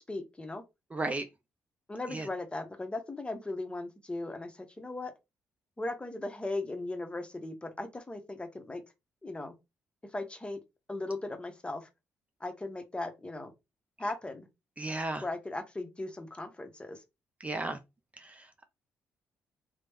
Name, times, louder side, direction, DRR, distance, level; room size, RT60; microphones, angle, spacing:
voice 1, 0.1-0.6 1.9-5.1 5.8-8.8 9.2-9.5 10.1-10.6 10.9-11.9 12.4-13.5 14.0-14.5 15.2-17.0, left 2 dB, 20° left, 0.7 m, -37 dB
voice 2, 0.9-1.2 2.1-2.3 14.8-15.2 17.4-17.8 18.2-18.7, right 2 dB, 25° right, 0.4 m, -34 dB
3.0 x 2.0 x 3.4 m
supercardioid pair, 60°, 6 cm